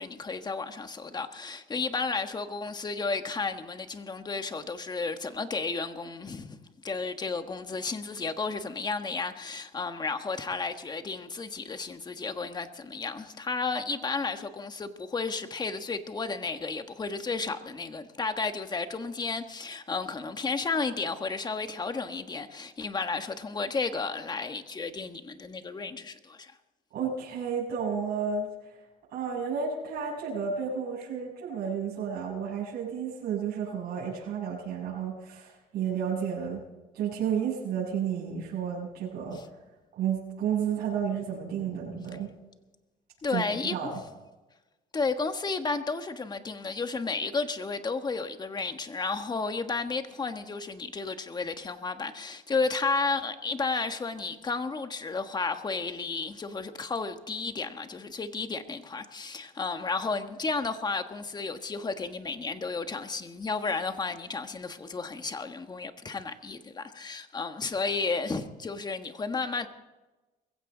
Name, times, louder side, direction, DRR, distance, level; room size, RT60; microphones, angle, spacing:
voice 1, 0.0-26.5 39.3-39.4 41.7-41.8 43.2-43.9 44.9-69.7, left 4 dB, 25° left, 1.4 m, -32 dB
voice 2, 26.9-28.7 29.1-36.6 36.9-39.4 40.0-42.3 43.3-43.4 43.7-44.0, right 7 dB, 70° right, 6.9 m, -32 dB
21.5 x 16.0 x 3.9 m
cardioid pair, 110°, 17 cm